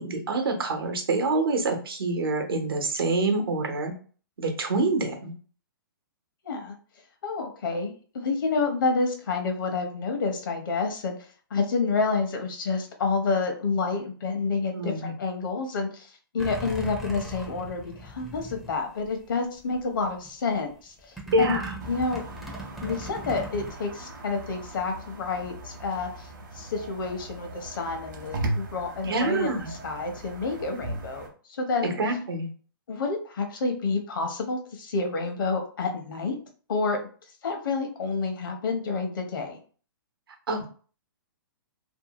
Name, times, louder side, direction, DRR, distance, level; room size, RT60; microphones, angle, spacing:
voice 1, 0.0-3.9 4.4-5.3 14.7-15.1 21.3-21.7 29.0-29.7 31.8-32.5 40.5-40.7, right 2 dB, 85° right, 4 dB, 0.8 m, -26 dB
voice 2, 6.4-6.7 7.2-11.2 11.5-21.6 21.9-22.2 22.8-32.0 32.9-36.4 36.7-37.0 37.4-39.6, left 4 dB, 65° left, 4 dB, 0.8 m, -29 dB
sound 1, 16.4-19.4 19.7-20.3 21.2-23.7, right 1 dB, ahead, 0.4 m, -39 dB
sound 2, 21.8-31.3, right 2 dB, 55° right, 0.8 m, -38 dB
2.7 x 2.2 x 2.9 m, 0.41 s
hypercardioid pair, 150°, 12 cm